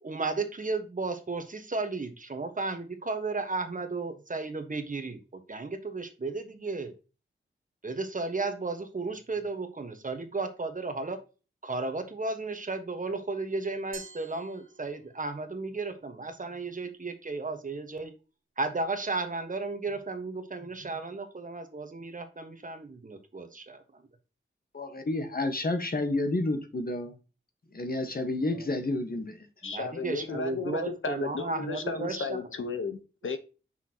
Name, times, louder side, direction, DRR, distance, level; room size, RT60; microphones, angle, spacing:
voice 1, 0.0-5.2 5.5-6.9 7.8-11.2 11.6-18.1 18.6-24.0 28.5-28.8 29.6-32.4, right 3 dB, 40° right, 1.3 m, -34 dB
Glass, 13.9-15.4, right 5 dB, 70° right, 1.3 m, -48 dB
voice 2, 24.7-27.2 27.7-29.4, left 2 dB, 45° left, 1.3 m, -30 dB
voice 3, 29.6-33.4, left 4 dB, 70° left, 1.0 m, -34 dB
6.2 x 5.7 x 2.9 m
wide cardioid pair, 100°, 21 cm